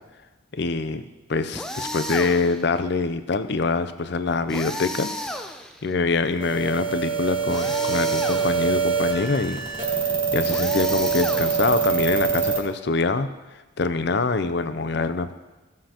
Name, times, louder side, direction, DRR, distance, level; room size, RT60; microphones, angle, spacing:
voice 1, 0.6-1.0 1.3-5.1 5.8-9.6 10.3-13.3 13.8-15.3, left 3 dB, 55° left, 11 dB, 0.5 m, -24 dB
sound 1, 1.5-2.7 4.5-5.9 7.5-8.8 10.5-11.9, left 1 dB, 5° left, 0.4 m, -33 dB
sound 2, 6.4-12.6, right 6 dB, 30° right, 1.8 m, -24 dB
15.5 x 7.5 x 2.9 m, 1.2 s
head